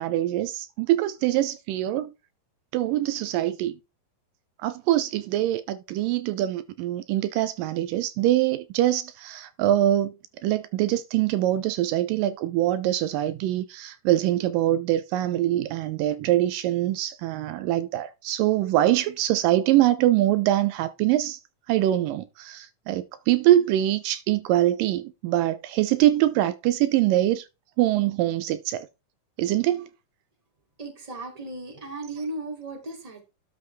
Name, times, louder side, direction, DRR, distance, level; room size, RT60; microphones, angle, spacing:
voice 1, 0.0-2.1 2.7-3.8 4.6-10.1 10.4-21.4 21.7-27.5 27.8-28.9 29.4-29.9, right 13 dB, 80° right, 2.2 m, -23 dB
voice 2, 30.8-33.2, right 2 dB, 10° right, 2.3 m, -36 dB
12.0 x 6.4 x 3.3 m
omnidirectional pair, 4.0 m